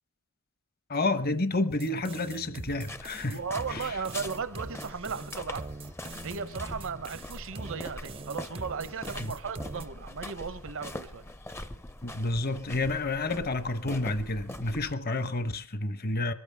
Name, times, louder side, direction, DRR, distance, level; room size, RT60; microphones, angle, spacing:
voice 1, 0.9-3.4 3.7-3.9 12.0-16.3, left 2 dB, 45° left, 1.1 m, -30 dB
sound 1, 1.7-9.9, right 2 dB, 25° right, 0.6 m, -42 dB
sound 2, 2.7-14.9, left 1 dB, 10° left, 0.7 m, -43 dB
voice 2, 3.3-5.6 6.2-11.2, right 5 dB, 60° right, 1.0 m, -36 dB
22.0 x 14.0 x 3.5 m
head